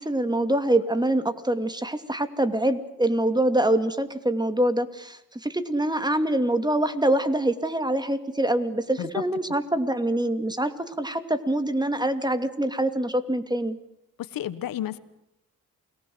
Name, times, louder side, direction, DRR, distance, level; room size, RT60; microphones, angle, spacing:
voice 1, 0.0-13.8, right 1 dB, 10° right, 11 dB, 2.6 m, -25 dB
voice 2, 14.3-15.0, left 12 dB, 85° left, 15 dB, 1.4 m, -31 dB
29.0 x 19.5 x 7.9 m, 0.90 s
cardioid pair, 65°, 34 cm